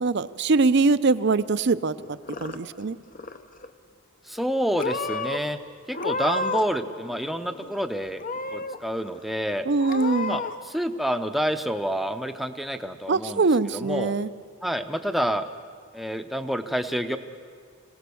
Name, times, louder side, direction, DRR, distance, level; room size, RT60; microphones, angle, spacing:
voice 1, 0.0-3.0 9.7-10.4 13.1-14.3, right 3 dB, 50° right, 15 dB, 0.5 m, -23 dB
Purr / Meow, 2.0-2.8 3.1-3.7 4.4-4.5 4.8-5.4 5.9-6.8 7.1-7.8 8.2-8.8 9.2-9.3 9.8-10.5, left 3 dB, 35° left, 0.7 m, -31 dB
voice 2, 4.2-5.6 5.9-8.2 8.5-9.7 10.3-13.4 13.7-14.1 14.6-15.5 15.9-17.2, equal, ahead, 7 dB, 0.7 m, -28 dB
26.0 x 17.5 x 7.0 m, 2.2 s
head